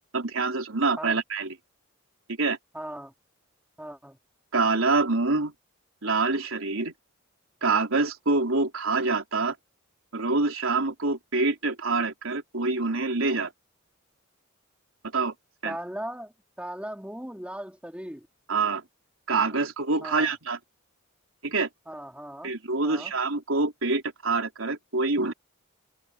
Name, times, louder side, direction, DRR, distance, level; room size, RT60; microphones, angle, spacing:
voice 1, 0.1-1.5 2.4-2.6 4.5-5.5 6.0-6.9 7.6-9.6 10.1-13.5 15.1-15.3 15.6-15.8 18.5-18.8 19.3-20.6 21.4-21.7 22.4-25.3, right 3 dB, 75° right, 3.9 m, -26 dB
voice 2, 2.7-3.1 3.8-4.2 15.6-18.3 19.5-19.6 20.0-20.3 21.9-22.5 22.8-23.1, right 1 dB, 5° right, 3.1 m, -38 dB
head